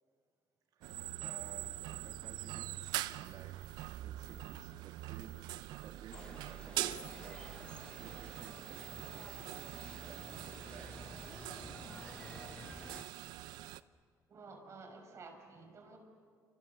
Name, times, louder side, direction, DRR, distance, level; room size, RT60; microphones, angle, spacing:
voice 1, 0.7-11.4, right 8 dB, 65° right, 6 dB, 1.7 m, -56 dB
sound 1, 0.8-13.8, right 15 dB, 85° right, 0.7 m, -43 dB
sound 2, 6.1-13.0, left 2 dB, 15° left, 0.7 m, -52 dB
voice 2, 14.3-16.0, right 4 dB, 45° right, 4 dB, 6.2 m, -52 dB
28.0 x 27.5 x 6.8 m, 2.2 s
cardioid pair, 105°, 7 cm